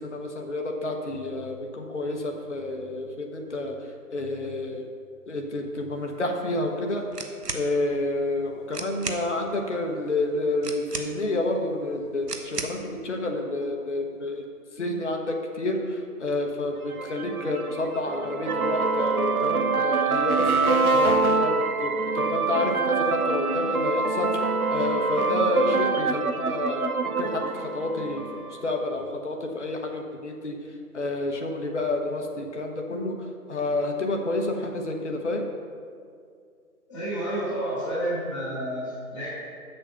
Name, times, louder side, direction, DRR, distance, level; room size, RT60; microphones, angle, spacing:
voice 1, 0.0-3.8 4.1-4.9 5.3-7.0 7.5-14.4 14.8-28.2 28.6-30.6 30.9-33.1 33.5-35.4, left 2 dB, 50° left, 2 dB, 1.1 m, -29 dB
sound 1, 7.1-7.7 8.4-8.5 8.7-9.3 10.6-11.4 12.3-12.8, right 3 dB, 90° right, 1.2 m, -34 dB
sound 2, 16.9-28.7, right 4 dB, 65° right, 0.8 m, -25 dB
voice 2, 36.9-39.3, right 1 dB, 10° left, -10 dB, 1.6 m, -30 dB
7.7 x 6.5 x 6.9 m, 2.2 s
figure-of-eight pair, 165°, 46 cm